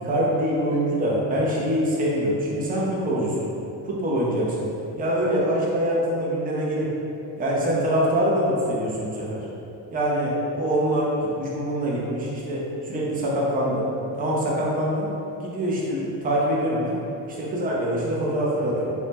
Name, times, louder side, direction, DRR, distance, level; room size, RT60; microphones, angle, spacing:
voice 1, 0.0-3.5 3.9-4.7 5.0-6.9 7.4-9.5 9.9-11.1 11.4-13.9 14.2-15.1 15.4-17.0 17.3-18.9, equal, 20° right, -5 dB, 0.5 m, -24 dB
2.7 x 2.1 x 3.3 m, 2.7 s
cardioid pair, 120°, 43 cm